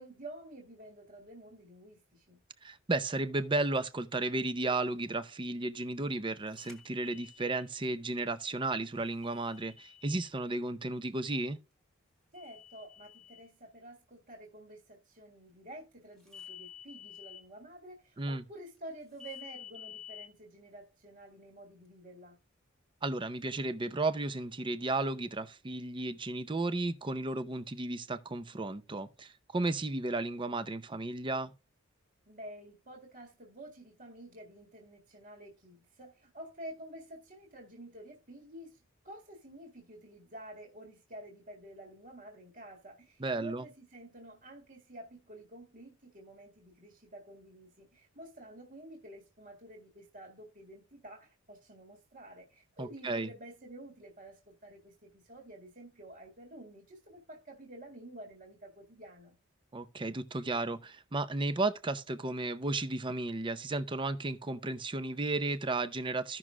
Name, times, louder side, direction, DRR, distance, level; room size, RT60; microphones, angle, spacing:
voice 1, 0.0-2.4 12.3-22.4 32.3-59.3, right 1 dB, 45° right, 2.0 m, -50 dB
voice 2, 2.6-11.6 18.2-18.4 23.0-31.5 43.2-43.6 52.8-53.3 59.7-66.4, right 2 dB, 25° right, 0.6 m, -34 dB
sound 1, 6.5-7.7 9.2-10.3 12.3-13.4 16.3-17.4 19.2-20.3, left 9 dB, ahead, 1.5 m, -50 dB
15.5 x 6.1 x 2.4 m
head